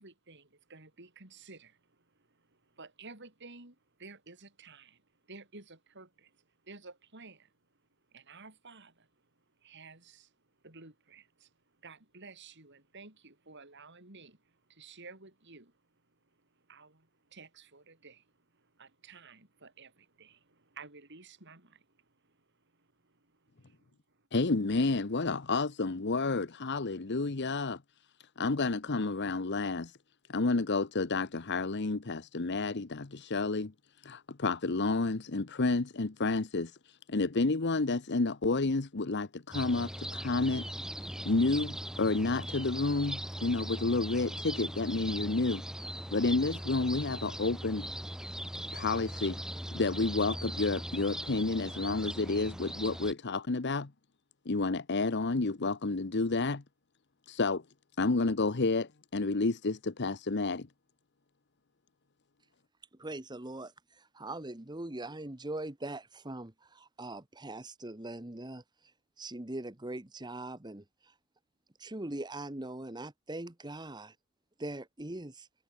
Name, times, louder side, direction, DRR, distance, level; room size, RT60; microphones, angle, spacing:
voice 1, 0.0-1.8 2.8-5.0 5.3-6.3 6.6-7.5 8.1-9.1 9.6-10.3 10.6-11.5 11.8-14.4 14.7-15.7 16.7-18.3 18.6-21.9 22.2-22.3 22.8-23.2 23.6-23.9, right 4 dB, 50° right, 4.2 m, -52 dB
voice 2, 24.3-27.8 28.4-30.0 30.3-33.7 34.0-40.7 41.2-45.6 46.1-47.9 48.7-49.4 49.7-53.9 54.4-56.6 57.3-57.6 58.0-60.7, left 3 dB, 50° left, 0.9 m, -30 dB
sound 1, 39.5-53.1, equal, 5° right, 1.7 m, -40 dB
voice 3, 63.0-63.7 64.1-68.6 69.2-70.8 71.8-74.1 74.6-75.5, right 2 dB, 20° right, 1.3 m, -41 dB
head